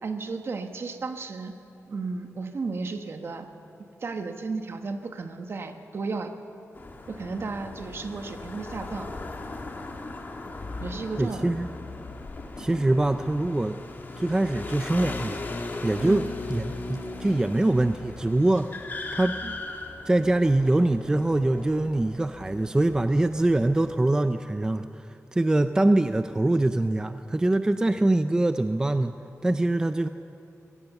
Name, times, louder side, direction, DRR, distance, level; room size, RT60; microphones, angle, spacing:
voice 1, 0.0-1.5 1.9-3.5 4.0-6.3 7.1-9.1 10.8-11.5 12.6-12.7 16.0-16.2 19.4-19.5, right 4 dB, 50° right, 7 dB, 1.2 m, -34 dB
sound 1, 6.7-23.9, left 2 dB, 35° left, 1.7 m, -38 dB
voice 2, 11.2-11.7 12.6-13.8 14.2-15.4 15.8-18.8 19.1-19.4 20.1-29.1 29.4-30.1, right 2 dB, 15° right, 10 dB, 0.4 m, -24 dB
22.5 x 17.0 x 6.9 m, 2.8 s
wide cardioid pair, 175°, 5 cm